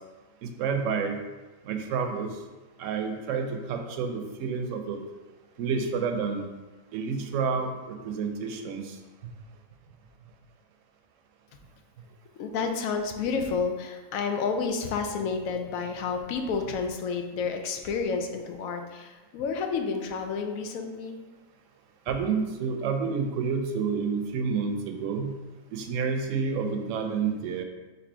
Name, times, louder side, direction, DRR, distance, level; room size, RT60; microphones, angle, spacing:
voice 1, 0.4-1.2 1.6-2.4 2.8-5.0 5.6-6.5 6.9-9.0 22.1-25.4 25.7-27.6, right 5 dB, 70° right, 5 dB, 0.9 m, -29 dB
voice 2, 12.4-21.2, left 5 dB, 85° left, 5 dB, 1.0 m, -30 dB
4.3 x 2.7 x 4.2 m, 1.2 s
omnidirectional pair, 1.4 m